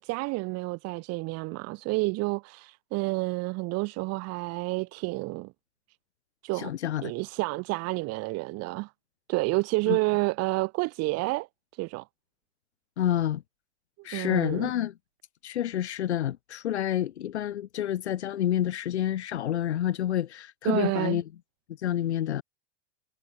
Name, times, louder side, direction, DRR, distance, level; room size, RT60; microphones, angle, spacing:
voice 1, 0.0-5.5 6.4-6.7 7.0-8.9 9.3-11.5 11.7-12.0 14.1-14.7 20.6-21.2, right 23 dB, 50° right, 7.7 m, -29 dB
voice 2, 6.5-7.1 9.9-10.0 13.0-13.4 14.0-14.9 15.4-21.2 21.8-22.4, left 11 dB, 85° left, 3.0 m, -28 dB
hypercardioid pair, 115°, 32 cm